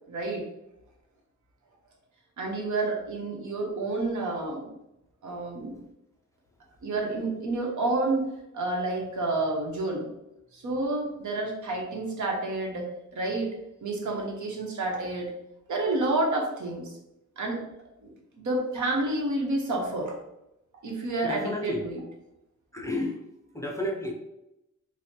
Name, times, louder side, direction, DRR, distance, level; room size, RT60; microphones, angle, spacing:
voice 1, 0.1-0.4 2.4-4.7 5.2-5.8 6.8-8.3 8.5-10.1 10.5-12.9 13.1-13.5 13.8-15.3 15.7-16.9 17.4-17.6 18.0-20.2 20.8-22.0, right 2 dB, 80° right, 0 dB, 0.9 m, -29 dB
voice 2, 21.2-21.8 22.7-23.2 23.5-24.1, left 1 dB, 10° left, -1 dB, 0.4 m, -31 dB
3.2 x 2.1 x 4.2 m, 0.88 s
wide cardioid pair, 170°, 29 cm